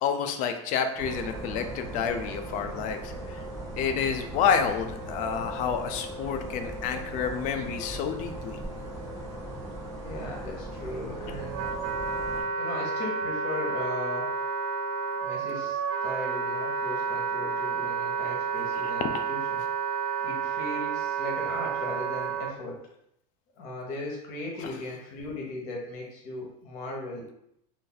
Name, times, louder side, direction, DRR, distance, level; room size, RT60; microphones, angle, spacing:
voice 1, 0.0-3.4 3.8-8.6 19.0-19.2 24.6-24.7, left 7 dB, 45° left, 7 dB, 0.4 m, -29 dB
sound 1, 0.9-12.4, right 1 dB, 15° right, 0.9 m, -38 dB
voice 2, 10.0-11.7 12.6-14.4 15.2-19.6 20.2-22.8 23.6-27.3, left 2 dB, 65° left, -1 dB, 1.1 m, -37 dB
Wind instrument woodwind instrument, 10.9-22.5, right 5 dB, 80° right, 0.4 m, -30 dB
2.6 x 2.5 x 3.9 m, 0.76 s
supercardioid pair, 135°, 19 cm